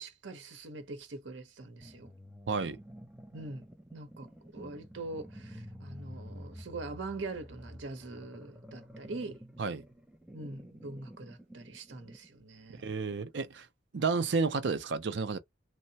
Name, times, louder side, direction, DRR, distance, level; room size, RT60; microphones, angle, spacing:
voice 1, 0.0-2.1 3.3-3.6 3.9-4.3 4.5-9.4 10.3-12.9, right 2 dB, 90° right, 0.9 m, -43 dB
sound 1, 1.8-12.3, equal, 5° right, 0.5 m, -50 dB
voice 2, 2.5-2.8 9.6-9.8 12.8-13.7 13.9-15.4, right 4 dB, 70° right, 0.5 m, -31 dB
3.2 x 2.1 x 2.8 m
head